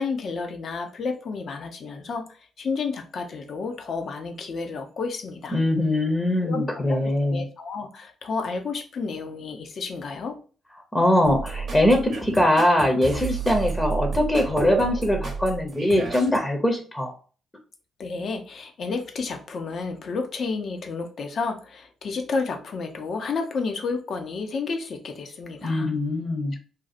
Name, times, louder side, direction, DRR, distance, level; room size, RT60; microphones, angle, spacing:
voice 1, 0.0-2.2 2.6-5.6 6.4-10.4 18.0-25.9 26.5-26.6, left 4 dB, 55° left, 5 dB, 0.6 m, -31 dB
voice 2, 5.5-7.5 10.9-17.1 25.6-26.5, left 1 dB, 20° left, 3 dB, 0.8 m, -22 dB
sound 1, 11.2-16.4, right 4 dB, 55° right, 0.8 m, -31 dB
2.7 x 2.3 x 4.1 m, 0.39 s
hypercardioid pair, 45°, 0 cm